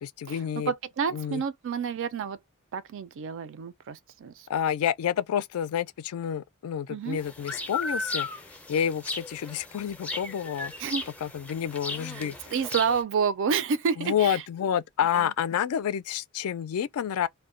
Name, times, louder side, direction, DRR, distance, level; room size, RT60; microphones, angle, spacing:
voice 1, 0.0-0.7 1.1-1.4 4.5-10.7 11.2-12.5 14.0-17.3, left 9 dB, 70° left, 0.3 m, -29 dB
voice 2, 0.7-2.4 2.7-4.5 6.9-7.2 10.8-11.1 12.2-12.3 12.5-14.4 15.1-15.3, right 6 dB, 60° right, 0.4 m, -29 dB
sound 1, 7.1-13.0, left 3 dB, 5° left, 0.4 m, -36 dB
2.2 x 2.1 x 3.6 m
head